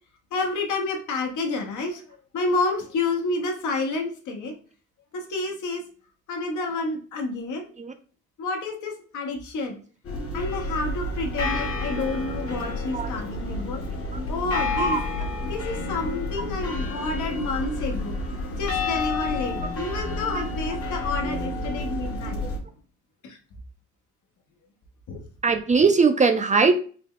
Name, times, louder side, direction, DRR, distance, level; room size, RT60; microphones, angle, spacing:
voice 1, 0.3-2.0 2.3-4.5 5.1-5.8 6.3-7.7 8.4-9.8 10.3-13.8 14.3-15.0 15.4-22.5 23.2-23.4 25.1-25.2, left 3 dB, 75° left, 1.0 m, -29 dB
sound 1, 10.0-22.6, left 2 dB, 50° left, 1.0 m, -30 dB
voice 2, 25.4-26.8, right 4 dB, 25° right, 0.4 m, -20 dB
3.7 x 2.3 x 3.6 m
cardioid pair, 90°, 30 cm